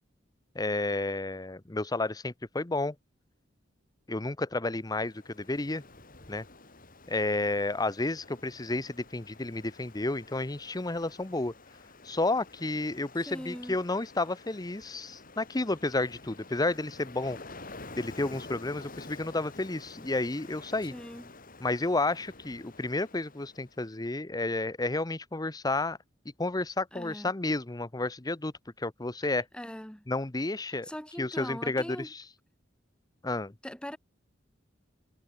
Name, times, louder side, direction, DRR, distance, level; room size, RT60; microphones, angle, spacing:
voice 1, 0.5-3.0 4.1-5.8 6.3-6.4 7.1-11.5 12.0-17.4 18.0-20.9 21.6-26.0 26.4-28.5 28.8-29.5 30.1-30.9 31.2-32.2 33.2-33.5, left 2 dB, 20° left, 0.8 m, -31 dB
Ocean, 4.8-23.9, left 3 dB, 50° left, 5.7 m, -50 dB
voice 2, 13.3-13.8 20.9-21.3 26.9-27.3 29.5-30.1 30.7-32.1 33.6-34.0, equal, 5° left, 3.2 m, -41 dB
head